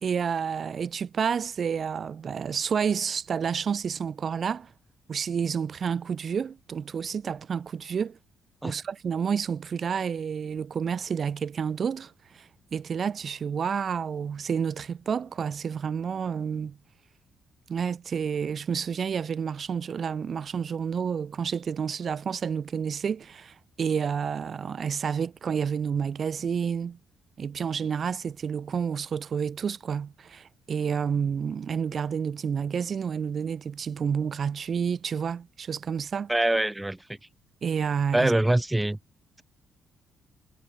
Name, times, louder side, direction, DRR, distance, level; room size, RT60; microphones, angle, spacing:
voice 1, 0.0-4.7 5.1-8.2 8.6-16.8 17.7-27.0 27.4-36.3 37.6-38.3, right 7 dB, 50° right, 1.2 m, -30 dB
voice 2, 36.3-37.2 38.1-39.0, right 1 dB, 10° right, 1.1 m, -24 dB
cardioid pair, 90°, 0 cm